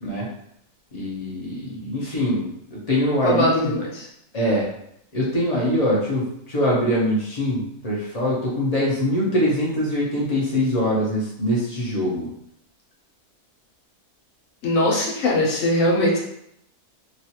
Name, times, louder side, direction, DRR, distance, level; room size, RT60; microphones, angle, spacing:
voice 1, 0.9-3.7 4.3-4.7 5.1-12.3, equal, 35° left, -5 dB, 0.6 m, -23 dB
voice 2, 3.2-4.1 14.6-16.2, left 1 dB, 60° left, -4 dB, 1.1 m, -21 dB
3.1 x 2.4 x 2.8 m, 0.74 s
omnidirectional pair, 1.6 m